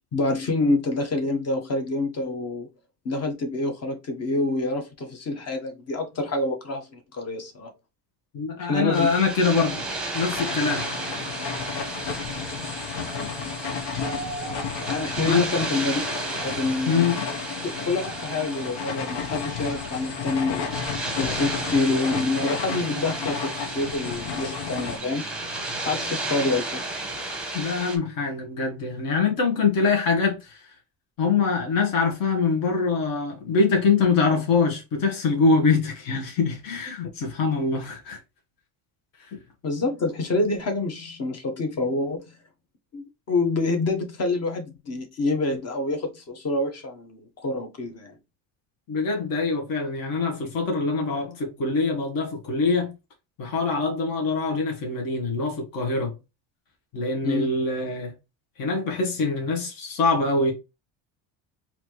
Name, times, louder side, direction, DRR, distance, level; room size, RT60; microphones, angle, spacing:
voice 1, 0.1-2.7 3.0-7.7 8.6-9.1 14.8-16.0 16.4-17.1 17.9-20.7 21.2-25.4 25.8-26.8 39.6-42.4 42.9-48.1 57.2-57.5, left 2 dB, 40° left, 1.2 m, -27 dB
voice 2, 8.3-9.8 10.1-10.9 15.2-15.5 16.9-17.3 27.5-30.7 31.2-38.2 39.3-39.4 48.9-52.9 53.4-56.1 56.9-58.1 58.6-60.5, left 4 dB, 55° left, 1.5 m, -24 dB
sound 1, 8.9-28.0, right 2 dB, ahead, 0.9 m, -33 dB
sound 2, 10.1-25.0, left 6 dB, 80° left, 1.0 m, -33 dB
4.2 x 2.9 x 3.1 m
cardioid pair, 135°, 41 cm